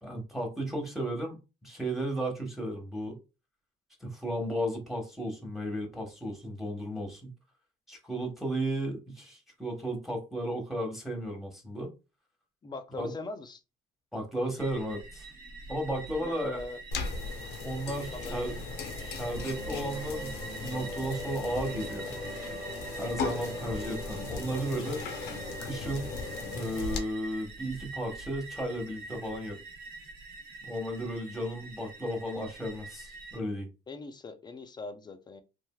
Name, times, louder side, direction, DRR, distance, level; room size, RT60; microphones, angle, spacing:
voice 1, 0.0-1.4 1.6-3.2 4.0-7.3 7.9-11.9 13.0-13.1 14.1-15.3 15.7-16.6 17.6-18.5 19.0-22.2 23.0-25.0 25.6-26.2 26.5-29.6 30.6-33.7, right 1 dB, ahead, 1.0 m, -34 dB
voice 2, 12.6-13.6 16.2-16.8 18.1-18.6 33.9-35.4, left 3 dB, 25° left, 0.5 m, -41 dB
sound 1, 14.6-33.4, right 3 dB, 60° right, 0.9 m, -45 dB
sound 2, 16.9-27.0, left 5 dB, 80° left, 0.7 m, -38 dB
sound 3, 19.2-26.6, right 2 dB, 35° right, 0.9 m, -42 dB
3.2 x 2.5 x 2.3 m
cardioid pair, 110°, 17 cm